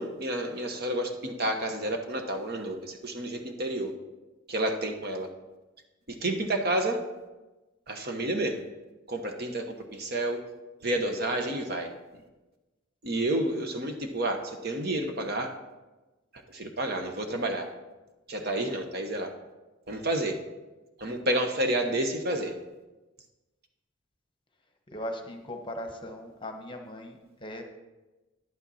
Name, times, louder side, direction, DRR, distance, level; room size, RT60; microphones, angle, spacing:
voice 1, 0.0-3.9 4.5-5.3 6.1-7.0 7.9-8.6 9.1-10.4 10.8-11.9 13.0-15.5 16.5-17.7 18.3-19.3 19.9-20.4 21.0-22.5, right 1 dB, 50° right, 4 dB, 1.0 m, -30 dB
voice 2, 24.9-27.6, left 1 dB, 25° left, 4 dB, 1.0 m, -38 dB
10.5 x 8.9 x 4.2 m, 1.1 s
head